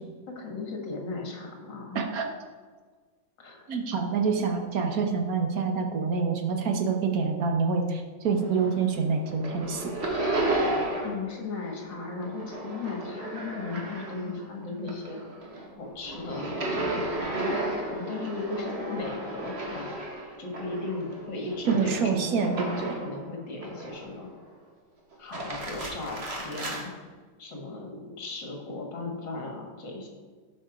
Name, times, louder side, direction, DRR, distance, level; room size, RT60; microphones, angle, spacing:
voice 1, 0.3-2.0 3.4-3.7 11.0-15.2 15.8-19.9 20.4-24.3 25.2-26.9 27.4-30.1, left 3 dB, 70° left, 1 dB, 2.5 m, -37 dB
voice 2, 1.9-2.3 3.7-9.9 21.7-22.9, right 5 dB, 55° right, 4 dB, 1.4 m, -26 dB
sound 1, 8.2-9.0 9.2-11.3 11.5-14.4 14.8-23.1 23.6-24.3 25.1-26.8, right 1 dB, 35° right, 1.6 m, -33 dB
12.5 x 4.9 x 5.1 m, 1.5 s
omnidirectional pair, 2.1 m